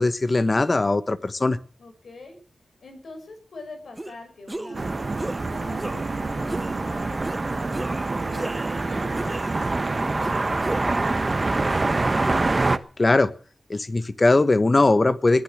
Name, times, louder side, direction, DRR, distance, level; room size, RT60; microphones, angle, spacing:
voice 1, 0.0-1.6 13.0-13.3 13.7-15.4, left 2 dB, 35° left, 14 dB, 1.2 m, -20 dB
voice 2, 1.8-2.4 2.8-8.5 8.8-11.9, left 3 dB, 80° left, 5 dB, 6.4 m, -44 dB
sound 1, 4.0-4.2 4.5-4.8 5.2-5.4 5.8-6.2 6.5-6.8 7.2-7.4 7.7-8.9 9.2-9.8 10.2-11.2, right 1 dB, 20° right, 0.7 m, -35 dB
sound 2, 4.7-12.8, right 2 dB, 35° right, 1.1 m, -25 dB
sound 3, 4.7-10.0, right 5 dB, 80° right, 1.9 m, -38 dB
21.0 x 10.0 x 6.3 m, 0.42 s
wide cardioid pair, 90°, 0 cm